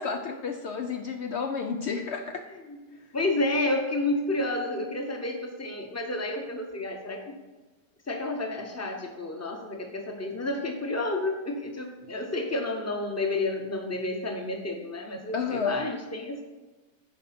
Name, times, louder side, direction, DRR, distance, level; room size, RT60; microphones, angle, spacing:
voice 1, 0.0-2.4 15.3-15.8, left 5 dB, 85° left, 5 dB, 0.6 m, -31 dB
voice 2, 2.5-7.3 8.1-16.4, left 2 dB, 15° left, 4 dB, 0.7 m, -30 dB
8.6 x 5.1 x 5.9 m, 1.2 s
omnidirectional pair, 1.8 m